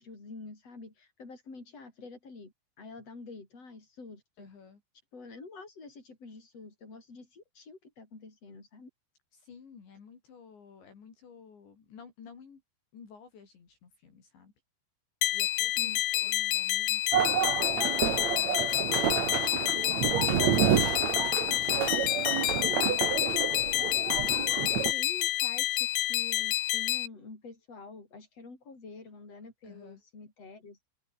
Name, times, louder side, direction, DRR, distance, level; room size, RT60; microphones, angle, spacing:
voice 1, 0.0-4.5 5.1-8.9 15.8-16.3 24.7-30.9, left 3 dB, 30° left, 8.6 m, -48 dB
voice 2, 4.4-4.8 9.3-12.6 12.9-14.5 15.3-23.1 29.6-30.0, left 6 dB, 60° left, 7.0 m, -54 dB
sound 1, 15.2-27.1, left 15 dB, 80° left, 3.9 m, -29 dB
sound 2, 17.1-24.9, right 10 dB, 70° right, 1.6 m, -29 dB
open air
omnidirectional pair, 5.8 m